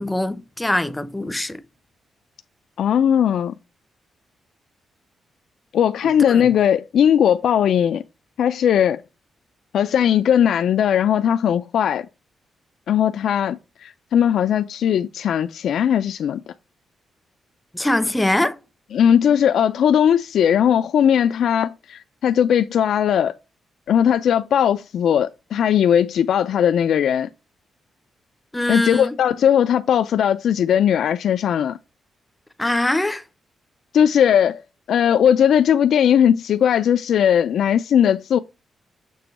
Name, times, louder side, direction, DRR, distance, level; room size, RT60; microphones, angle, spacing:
voice 1, 0.0-1.6 6.0-6.5 17.7-18.6 28.5-29.2 32.6-33.2, left 1 dB, 10° left, 0.5 m, -23 dB
voice 2, 2.8-3.5 5.7-8.0 8.4-9.0 9.7-12.1 12.9-16.4 18.9-23.4 23.9-27.3 28.7-31.8 33.9-34.6 34.9-38.4, left 9 dB, 70° left, 0.3 m, -18 dB
6.9 x 3.0 x 5.8 m
wide cardioid pair, 155°, 0 cm